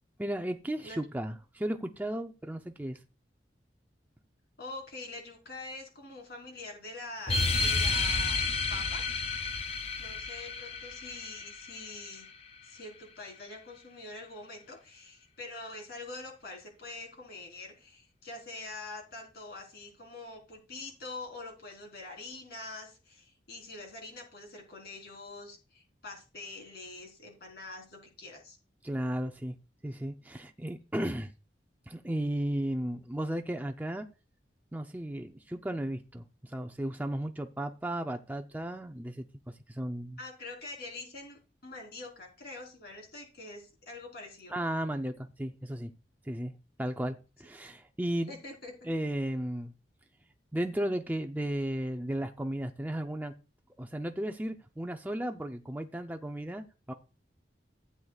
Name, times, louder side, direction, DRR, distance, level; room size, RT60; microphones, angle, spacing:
voice 1, 0.2-3.0 28.8-29.5 29.8-31.3 31.9-34.1 34.7-40.2 44.5-45.9 46.2-46.5 46.8-48.3 48.8-49.7 50.5-53.3 53.8-56.9, right 1 dB, 10° right, 4 dB, 0.5 m, -34 dB
voice 2, 4.6-8.4 8.7-9.0 9.4-9.6 10.0-12.3 12.6-28.6 40.2-44.5 48.3-48.9, left 2 dB, 60° left, 1 dB, 3.9 m, -45 dB
sound 1, 7.3-12.3, left 4 dB, 35° left, 0.6 m, -31 dB
15.5 x 8.0 x 2.4 m, 0.32 s
head